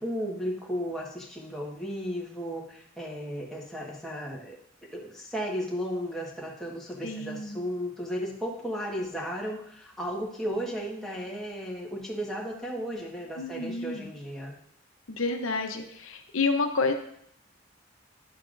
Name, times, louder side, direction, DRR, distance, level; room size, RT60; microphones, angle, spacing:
voice 1, 0.0-4.6 4.9-14.5, equal, ahead, -4 dB, 1.4 m, -34 dB
voice 2, 7.0-7.6 13.4-14.1 15.1-16.9, left 3 dB, 85° left, 5 dB, 0.8 m, -29 dB
10.0 x 7.0 x 2.6 m, 0.71 s
head